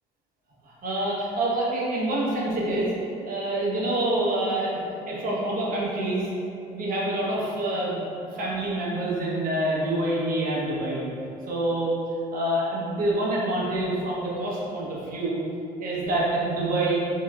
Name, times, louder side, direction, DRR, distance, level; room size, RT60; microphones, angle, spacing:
voice 1, 0.6-2.9 3.2-4.8 5.1-6.3 6.7-11.1 11.5-12.0 12.3-15.4 15.8-17.0, right 1 dB, 55° right, -5 dB, 1.0 m, -26 dB
4.7 x 3.0 x 2.4 m, 2.6 s
cardioid pair, 110°, 17 cm